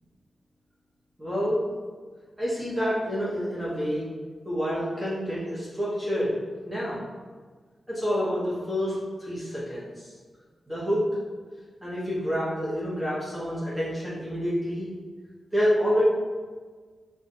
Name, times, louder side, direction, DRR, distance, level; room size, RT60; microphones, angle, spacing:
voice 1, 1.2-1.6 2.4-4.1 4.4-6.3 6.6-7.0 7.9-8.9 9.2-10.1 10.7-11.0 11.8-14.9 15.5-16.0, equal, 10° right, -9 dB, 0.9 m, -28 dB
5.6 x 2.3 x 2.7 m, 1.5 s
wide cardioid pair, 115°, 0 cm